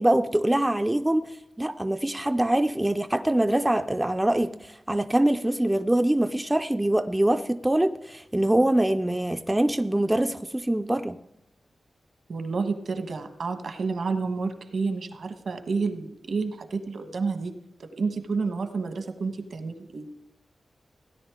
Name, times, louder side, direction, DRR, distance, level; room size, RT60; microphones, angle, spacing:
voice 1, 0.0-11.2, right 1 dB, 10° right, 8 dB, 0.4 m, -24 dB
voice 2, 12.3-17.5 17.8-20.1, right 4 dB, 70° right, 8 dB, 1.3 m, -30 dB
17.0 x 10.5 x 3.7 m, 0.86 s
wide cardioid pair, 125°, 0 cm